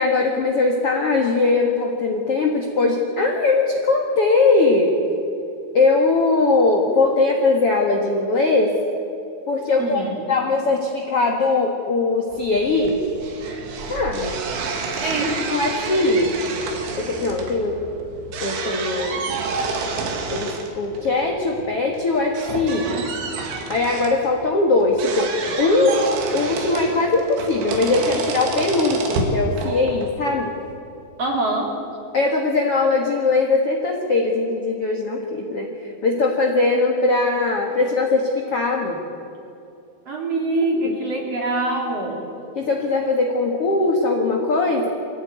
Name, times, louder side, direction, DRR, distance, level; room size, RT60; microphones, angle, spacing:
voice 1, 0.0-4.9 5.7-8.8 9.5-13.0 13.9-14.3 15.5-16.4 17.0-17.8 18.4-19.3 20.3-22.9 23.7-26.0 26.3-30.5 32.1-39.0 40.6-41.0 42.5-44.9, left 3 dB, 75° left, 1 dB, 1.3 m, -20 dB
voice 2, 9.8-10.2 15.0-15.4 31.2-31.7 40.1-42.3, right 2 dB, 35° right, -1 dB, 3.7 m, -24 dB
sound 1, 12.3-30.7, right 4 dB, 75° right, 4.5 m, -29 dB
23.0 x 16.0 x 9.4 m, 2.8 s
omnidirectional pair, 5.6 m